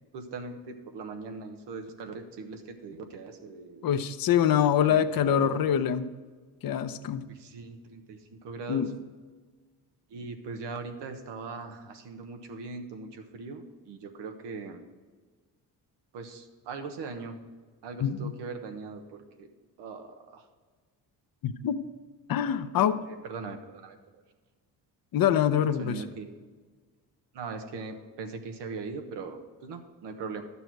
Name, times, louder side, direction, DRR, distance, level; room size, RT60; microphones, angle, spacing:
voice 1, 0.1-3.9 4.8-5.7 7.2-8.8 10.1-14.8 16.1-17.4 17.8-19.5 19.8-20.5 23.3-24.2 25.8-26.3 27.3-30.4, right 4 dB, 90° right, 6 dB, 1.2 m, -40 dB
voice 2, 3.8-6.1 6.6-7.2 8.7-9.0 18.0-18.3 21.4-21.8 22.3-23.0 25.1-26.0, left 9 dB, 55° left, 9 dB, 0.7 m, -25 dB
12.0 x 6.9 x 4.6 m, 1.4 s
cardioid pair, 85°, 41 cm